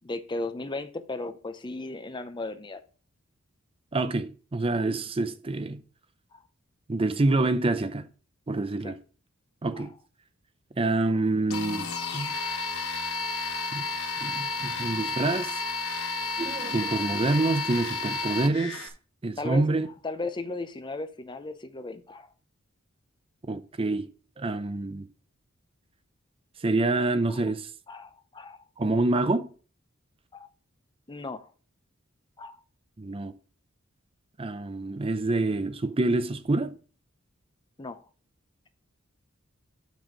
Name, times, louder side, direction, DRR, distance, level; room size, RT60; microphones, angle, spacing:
voice 1, 0.0-2.8 6.3-6.4 8.8-8.9 9.8-9.9 12.4-12.8 14.6-14.8 19.4-19.7 20.0-22.3 27.3-27.4 27.9-28.6 30.3-30.5 31.1-31.5 32.4-32.6 37.8-38.0, left 2 dB, 20° left, 0.6 m, -36 dB
voice 2, 3.9-5.8 6.9-8.1 8.5-9.0 9.6-9.9 10.8-12.3 13.7-13.9 14.2-15.6 16.4-18.9 19.2-19.9 23.5-24.1 24.4-25.1 26.6-27.7 28.8-29.5 33.0-33.3 34.4-36.8, right 2 dB, 25° right, 0.5 m, -27 dB
sound 1, 11.5-18.9, left 3 dB, 80° left, 1.3 m, -32 dB
7.0 x 6.1 x 5.0 m
head